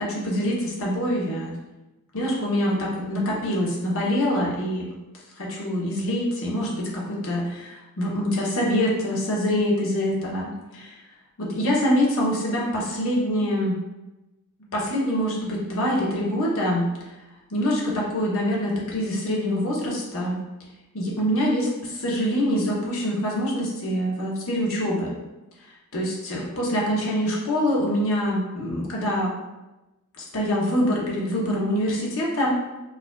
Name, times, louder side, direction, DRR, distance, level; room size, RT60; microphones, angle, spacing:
voice 1, 0.0-1.6 2.1-5.0 5.4-11.0 11.4-13.8 14.7-16.9 17.5-20.4 20.9-25.1 25.9-29.3 30.2-32.6, equal, 65° left, -3 dB, 0.9 m, -25 dB
4.6 x 2.5 x 2.3 m, 1.0 s
head